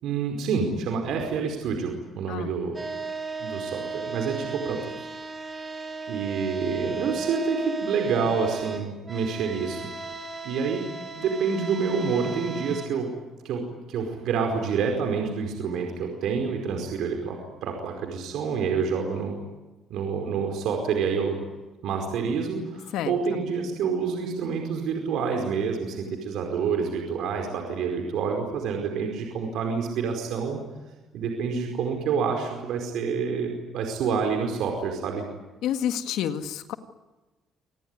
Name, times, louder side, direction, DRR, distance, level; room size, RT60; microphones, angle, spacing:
voice 1, 0.0-2.8 3.4-5.1 6.1-9.8 10.4-10.8 11.1-13.1 13.4-19.4 19.9-21.4 21.8-30.6 31.1-35.2, right 5 dB, 70° right, 3 dB, 4.8 m, -28 dB
sound 1, 2.7-12.9, right 4 dB, 20° right, 5.3 m, -35 dB
voice 2, 35.6-36.7, left 10 dB, 75° left, 9 dB, 1.8 m, -28 dB
27.0 x 19.5 x 9.8 m, 1.1 s
cardioid pair, 105°, 0 cm